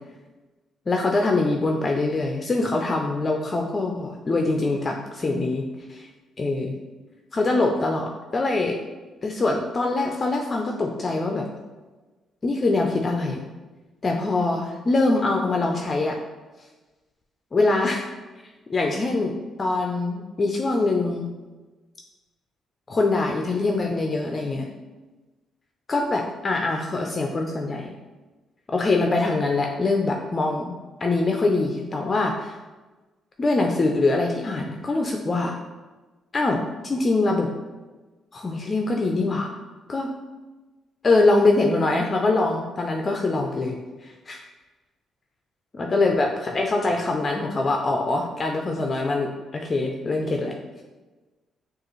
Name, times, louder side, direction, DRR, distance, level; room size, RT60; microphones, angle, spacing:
voice 1, 0.9-6.1 6.4-6.8 7.3-8.8 9.2-11.4 12.4-13.4 14.0-16.2 17.5-18.1 18.7-21.3 22.9-24.7 25.9-27.9 28.7-32.6 33.4-35.6 36.3-37.5 38.3-39.5 39.9-40.1 41.0-44.4 45.8-50.5, left 2 dB, 35° left, 2 dB, 0.4 m, -23 dB
6.3 x 2.4 x 3.1 m, 1.2 s
cardioid pair, 90°, 0 cm